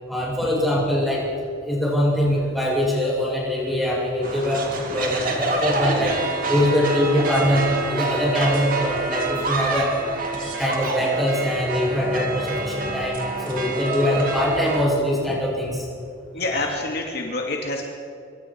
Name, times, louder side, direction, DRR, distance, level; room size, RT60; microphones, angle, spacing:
voice 1, 0.1-1.2 1.6-6.2 6.5-9.9 10.4-15.8 16.5-16.7, left 1 dB, ahead, -5 dB, 7.7 m, -23 dB
sound 1, 4.2-14.8, right 3 dB, 45° right, 3.3 m, -27 dB
voice 2, 16.3-17.8, left 2 dB, 55° left, 0 dB, 2.5 m, -27 dB
25.0 x 24.5 x 4.7 m, 2.3 s
head